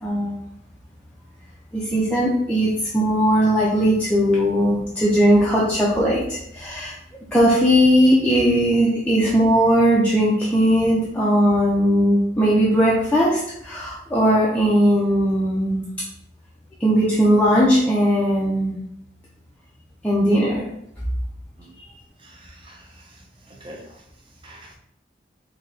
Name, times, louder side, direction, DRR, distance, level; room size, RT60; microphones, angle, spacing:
voice 1, 0.0-0.4 1.7-6.9 7.3-15.8 16.8-18.7 20.0-20.6, equal, 10° left, -7 dB, 0.5 m, -18 dB
voice 2, 22.2-23.2 23.5-24.0 24.4-24.8, right 1 dB, 30° right, 0 dB, 0.6 m, -45 dB
3.9 x 2.2 x 3.2 m, 0.76 s
head